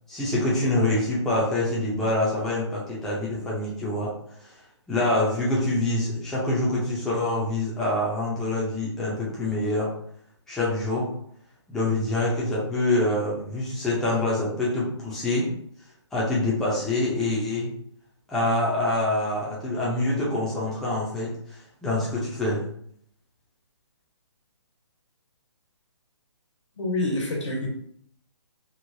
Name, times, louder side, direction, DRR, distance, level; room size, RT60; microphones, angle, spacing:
voice 1, 0.1-4.1 4.4-4.5 4.9-9.9 10.5-11.1 11.7-15.5 16.1-17.7 18.3-22.6, left 1 dB, 5° left, -8 dB, 0.5 m, -25 dB
voice 2, 26.8-27.7, left 2 dB, 90° left, 0 dB, 1.3 m, -27 dB
3.2 x 2.6 x 2.6 m, 0.66 s
hypercardioid pair, 160°, 15 cm